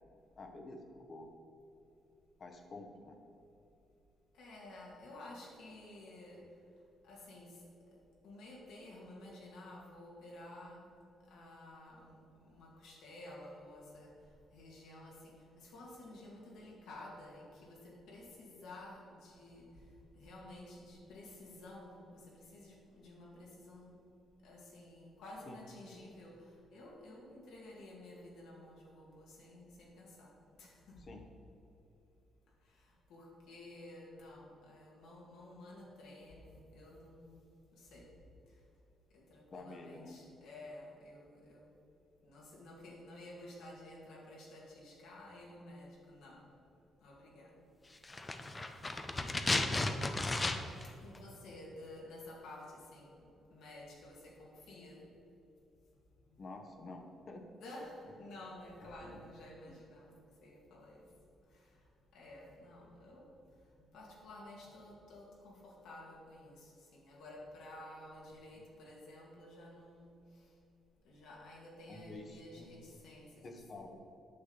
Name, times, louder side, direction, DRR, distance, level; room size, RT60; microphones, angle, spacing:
voice 1, 0.4-1.3 2.4-3.1 25.5-25.6 31.0-31.2 39.5-40.2 56.4-57.4 59.0-59.2 59.7-59.8 68.5-68.6 71.9-72.7 73.4-74.0, left 2 dB, 45° left, 3 dB, 1.1 m, -49 dB
voice 2, 4.3-6.4 7.0-7.6 7.9-8.0 8.2-10.9 11.3-14.2 14.5-19.8 20.1-24.0 24.4-30.3 30.6-31.1 32.6-37.4 37.7-38.1 39.1-41.7 42.2-46.5 47.0-47.7 51.0-55.1 56.3-56.4 57.6-61.1 61.5-61.8 62.1-63.3 63.8-70.5 71.0-73.6, left 1 dB, 80° left, -3 dB, 1.9 m, -52 dB
sound 1, 48.0-50.9 51.1-51.2, left 2 dB, 20° left, 0.6 m, -34 dB
8.6 x 6.4 x 4.0 m, 2.9 s
cardioid pair, 90°, 0 cm